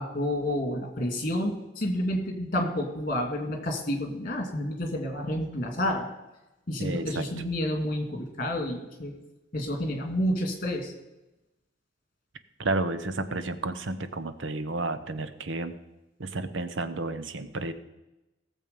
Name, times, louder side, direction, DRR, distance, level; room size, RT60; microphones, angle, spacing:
voice 1, 0.0-6.0 6.7-9.1 9.5-10.9, left 1 dB, 45° left, 3 dB, 2.4 m, -29 dB
voice 2, 6.8-7.2 12.6-15.7 16.2-17.7, right 2 dB, 75° right, 11 dB, 0.9 m, -31 dB
17.5 x 7.3 x 5.3 m, 0.97 s
head